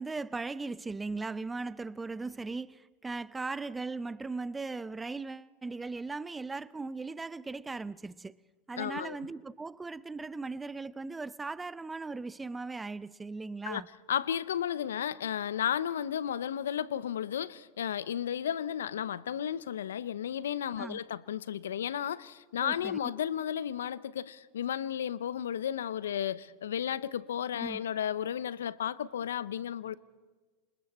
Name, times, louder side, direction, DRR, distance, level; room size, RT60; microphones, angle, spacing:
voice 1, 0.0-8.4 8.7-13.9 20.8-21.0 22.6-23.1 27.6-27.8, right 3 dB, 15° right, 0.5 m, -38 dB
voice 2, 8.8-9.2 13.6-13.8 14.1-30.0, left 9 dB, 80° left, 0.7 m, -33 dB
28.0 x 26.0 x 4.3 m
hypercardioid pair, 90°, 0 cm